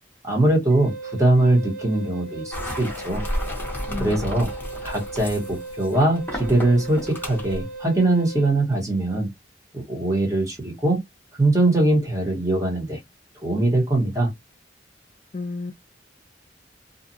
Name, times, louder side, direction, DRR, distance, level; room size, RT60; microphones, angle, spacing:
voice 1, 0.2-3.2 4.0-4.5 4.8-9.3 9.7-11.0 11.4-13.0 13.4-14.3, right 2 dB, 15° right, 1.2 m, -21 dB
Wind instrument woodwind instrument, 0.7-8.5, right 2 dB, 50° right, 0.6 m, -37 dB
sound 1, 2.5-7.6, equal, 10° left, 0.8 m, -32 dB
voice 2, 3.9-4.3 15.3-15.7, left 3 dB, 35° left, 0.3 m, -31 dB
2.6 x 2.4 x 2.6 m
head